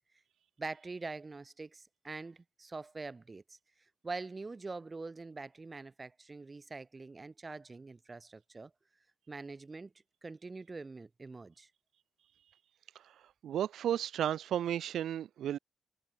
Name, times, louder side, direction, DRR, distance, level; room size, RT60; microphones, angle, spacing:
voice 1, 0.6-3.6 4.0-8.7 9.3-9.9 10.2-11.7, right 3 dB, 20° right, 1.8 m, -44 dB
voice 2, 13.4-15.6, right 10 dB, 80° right, 0.4 m, -33 dB
wide cardioid pair, 175°, 0 cm